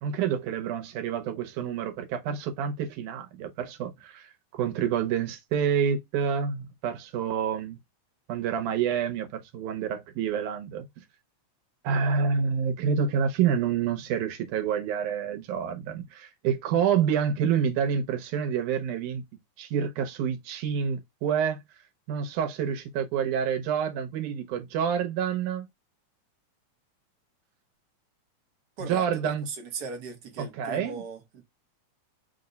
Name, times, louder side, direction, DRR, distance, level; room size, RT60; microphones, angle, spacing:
voice 1, 0.0-7.8 8.3-10.9 11.8-19.2 19.6-21.6 22.1-25.7 28.8-29.4 30.4-31.0, right 7 dB, 85° right, 2.3 m, -28 dB
voice 2, 28.8-31.4, right 5 dB, 65° right, 1.0 m, -38 dB
5.2 x 2.1 x 3.8 m
omnidirectional pair, 3.4 m